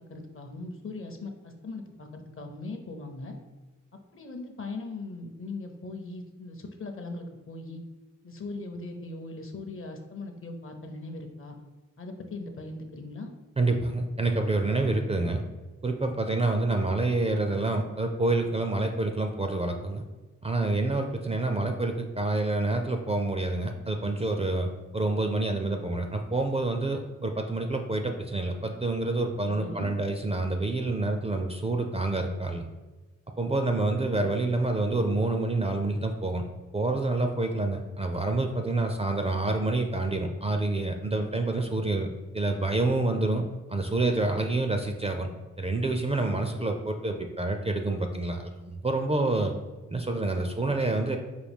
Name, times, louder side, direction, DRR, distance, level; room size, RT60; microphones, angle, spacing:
voice 1, 0.1-3.4 4.1-7.8 8.2-11.5 12.0-13.3 29.6-29.9, left 2 dB, 45° left, 5 dB, 0.7 m, -39 dB
voice 2, 13.6-15.4 15.8-20.0 20.4-32.6 33.4-36.4 36.7-42.1 42.3-43.4 43.7-45.3 45.6-49.5 49.9-51.2, right 2 dB, 20° right, 4 dB, 0.4 m, -27 dB
4.8 x 2.2 x 3.5 m, 1.2 s
cardioid pair, 65°, 31 cm